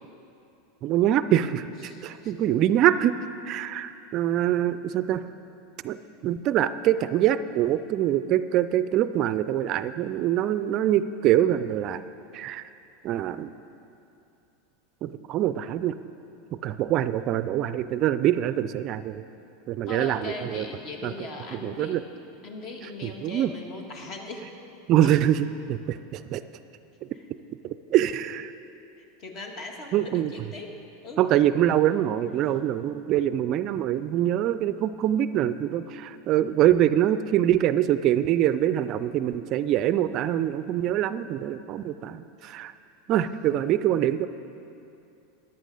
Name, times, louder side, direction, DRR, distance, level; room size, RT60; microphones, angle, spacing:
voice 1, 0.8-3.2 3.5-5.2 5.8-6.0 6.2-12.0 12.3-12.6 13.0-13.5 15.0-15.9 16.5-19.2 19.7-20.7 21.0-21.1 21.6-22.0 23.0-23.5 24.9-26.4 27.6-28.5 29.9-30.5 31.2-42.7 43.1-44.3, right 11 dB, 45° right, 13 dB, 0.4 m, -24 dB
voice 2, 1.8-2.3 19.8-22.0 22.4-24.5 25.0-25.3 27.1-27.3 29.0-30.8 31.0-31.2, left 2 dB, 50° left, 2 dB, 1.7 m, -39 dB
14.0 x 10.5 x 4.0 m, 2.7 s
hypercardioid pair, 90°, 0 cm